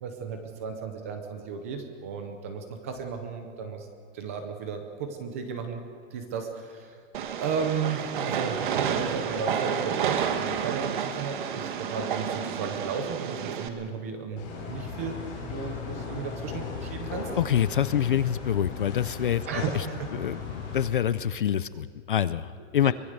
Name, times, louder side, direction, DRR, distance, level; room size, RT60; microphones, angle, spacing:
voice 1, 0.0-3.9 4.1-5.8 6.1-7.0 7.4-17.3 19.5-20.1 22.8-22.9, right 6 dB, 10° right, 6 dB, 0.6 m, -34 dB
Train, 7.1-13.7, right 7 dB, 40° right, 1.4 m, -30 dB
sound 1, 14.4-20.8, left 5 dB, 20° left, 5.3 m, -37 dB
voice 2, 17.4-19.5 19.7-19.8 20.1-22.9, left 10 dB, 45° left, 16 dB, 0.5 m, -26 dB
24.0 x 19.0 x 6.6 m, 2.1 s
hypercardioid pair, 180°, 38 cm